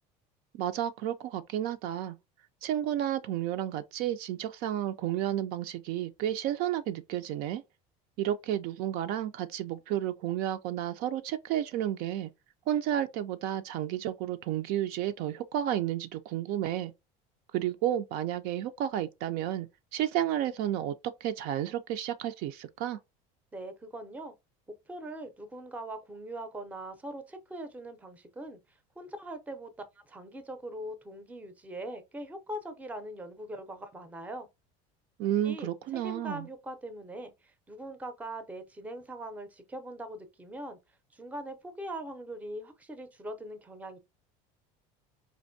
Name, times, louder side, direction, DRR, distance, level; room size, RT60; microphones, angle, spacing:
voice 1, 0.5-2.2 2.6-7.6 8.2-12.3 12.7-16.9 17.5-19.7 19.9-23.0 35.2-36.5, right 11 dB, 60° right, 0.4 m, -31 dB
voice 2, 23.5-24.3 24.9-28.6 29.0-34.5 35.4-35.7 36.0-40.8 41.1-44.0, right 1 dB, 10° right, 0.5 m, -41 dB
4.3 x 2.6 x 2.6 m
cardioid pair, 140°, 17 cm